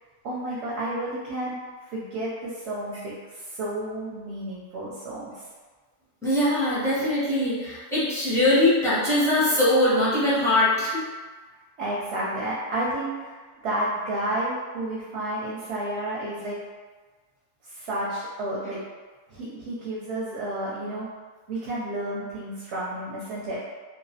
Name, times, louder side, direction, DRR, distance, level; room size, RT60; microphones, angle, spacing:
voice 1, 0.2-1.5 1.9-5.3 11.8-13.4 13.6-16.6 17.7-18.8 19.3-21.1 21.5-23.6, right 1 dB, 65° right, -7 dB, 0.7 m, -31 dB
voice 2, 6.2-11.0, left 1 dB, 5° left, -12 dB, 0.5 m, -22 dB
2.3 x 2.0 x 2.6 m, 1.4 s
omnidirectional pair, 1.3 m